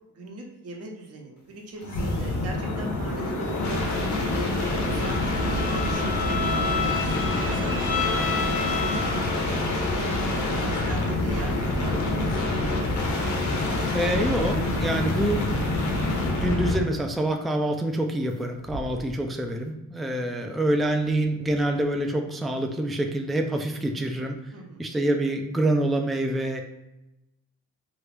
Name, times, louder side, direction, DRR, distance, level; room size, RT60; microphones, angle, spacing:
voice 1, 0.1-4.5 4.8-7.8 8.0-8.4 8.7-12.4 24.5-24.8, right 2 dB, 55° right, 0 dB, 0.9 m, -40 dB
sound 1, 1.8-16.9 18.6-19.1, left 2 dB, 70° left, 0.9 m, -26 dB
Bowed string instrument, 4.8-9.5, left 5 dB, 40° left, 0.7 m, -31 dB
voice 2, 13.9-15.4 16.4-24.4 24.8-26.6, right 1 dB, ahead, 3 dB, 0.3 m, -26 dB
3.0 x 2.4 x 3.3 m, 0.92 s
cardioid pair, 90°, 30 cm